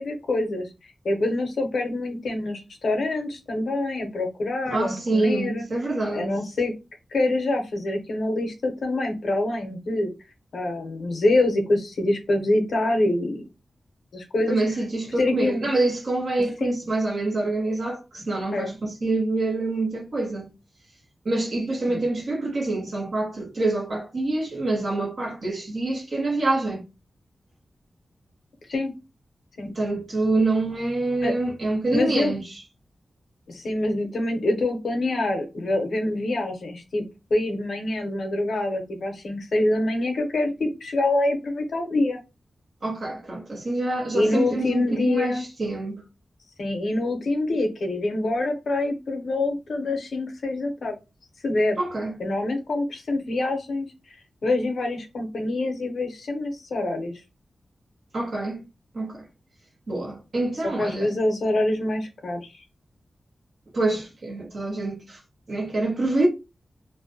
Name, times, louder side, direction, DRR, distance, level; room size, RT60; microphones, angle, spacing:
voice 1, 0.0-5.7 6.1-6.7 7.1-10.1 10.5-13.4 14.1-14.6 15.2-15.7 16.6-16.8 18.5-18.7 21.9-22.1 28.7-29.0 29.6-29.7 31.2-31.4 31.9-32.3 33.5-37.0 37.3-42.2 44.1-45.4 46.6-51.0 51.4-51.8 52.2-53.9 54.4-57.2 60.8-62.6, left 2 dB, 70° left, 0.6 m, -25 dB
voice 2, 4.7-6.3 14.5-20.5 21.2-26.8 29.6-32.6 42.8-46.0 51.8-52.2 58.1-58.6 58.9-59.2 59.9-61.1 63.7-65.2 65.5-66.3, right 2 dB, 55° right, 1.0 m, -26 dB
2.4 x 2.1 x 2.6 m
wide cardioid pair, 165°, 0 cm